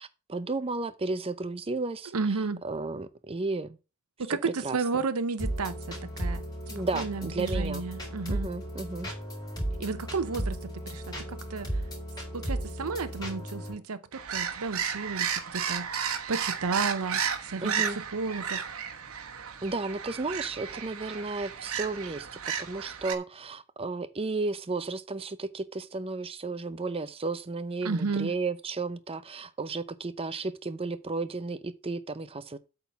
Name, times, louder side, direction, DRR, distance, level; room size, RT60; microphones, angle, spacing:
voice 1, 0.0-3.8 4.3-4.8 6.7-7.8 8.3-9.1 17.6-18.0 19.6-32.6, right 3 dB, 25° right, 0.6 m, -33 dB
voice 2, 2.1-2.6 4.2-6.4 6.9-8.5 9.8-11.7 12.3-18.6 27.8-28.3, right 4 dB, 90° right, 0.7 m, -32 dB
sound 1, 5.4-13.7, right 1 dB, 20° left, 3.8 m, -35 dB
sound 2, 14.1-23.2, right 7 dB, 70° right, 1.1 m, -33 dB
8.5 x 3.8 x 7.0 m
head